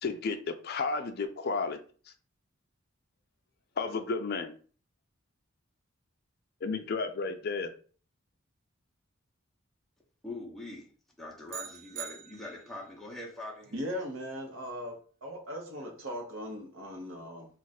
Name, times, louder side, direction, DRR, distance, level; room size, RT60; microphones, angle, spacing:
voice 1, 0.0-1.8 3.8-4.5 6.6-7.7, left 4 dB, 50° left, 7 dB, 0.4 m, -32 dB
voice 2, 10.2-10.9 11.2-13.7, left 2 dB, ahead, -2 dB, 0.6 m, -42 dB
sound 1, 11.5-12.9, right 10 dB, 45° right, 0.3 m, -43 dB
voice 3, 13.7-14.9 15.2-17.5, equal, 70° right, 1 dB, 0.9 m, -38 dB
2.4 x 2.4 x 4.1 m, 0.42 s
head